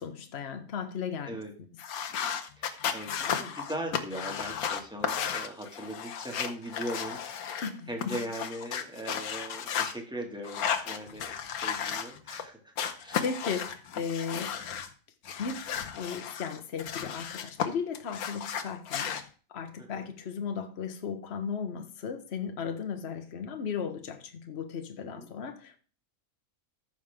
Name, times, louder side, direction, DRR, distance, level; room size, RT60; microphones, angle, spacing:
voice 1, 0.0-1.4 7.6-8.2 13.0-14.5 15.4-15.7 15.9-19.2 19.5-25.8, left 6 dB, 50° left, 7 dB, 1.2 m, -36 dB
sound 1, 1.8-7.7 8.0-9.9 10.4-12.4 12.8-14.9 15.2-17.7 17.9-19.2, left 8 dB, 75° left, 1.4 m, -34 dB
voice 2, 2.6-13.2 19.8-20.1 25.0-25.3, right 1 dB, 5° right, 1 dB, 2.0 m, -40 dB
14.0 x 6.0 x 3.5 m, 0.40 s
omnidirectional pair, 1.5 m